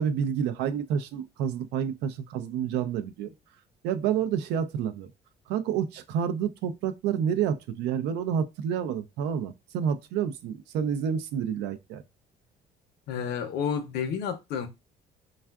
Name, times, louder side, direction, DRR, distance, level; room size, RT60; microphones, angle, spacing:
voice 1, 0.0-3.3 3.8-5.1 5.5-12.0, right 8 dB, 90° right, 0.4 m, -29 dB
voice 2, 13.1-14.7, left 7 dB, 75° left, 0.6 m, -30 dB
3.5 x 2.4 x 2.2 m
cardioid pair, 110°, 17 cm